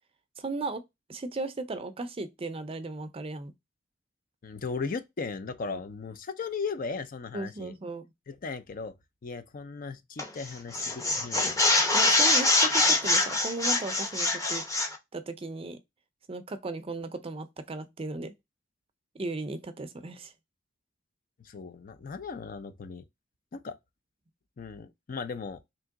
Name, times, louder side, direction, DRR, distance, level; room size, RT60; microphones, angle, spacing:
voice 1, 0.4-0.8 1.1-3.5 5.7-5.8 7.3-8.0 11.9-14.6 15.1-15.8 16.3-18.3 19.1-20.3, right 3 dB, 30° right, 0.5 m, -36 dB
voice 2, 4.4-7.7 8.3-8.9 9.2-11.7 21.4-23.0 23.5-23.7 24.6-25.6, left 4 dB, 45° left, 0.5 m, -37 dB
sound 1, 10.2-10.4 10.7-15.0, left 2 dB, 15° left, 0.8 m, -24 dB
3.6 x 2.9 x 3.6 m
head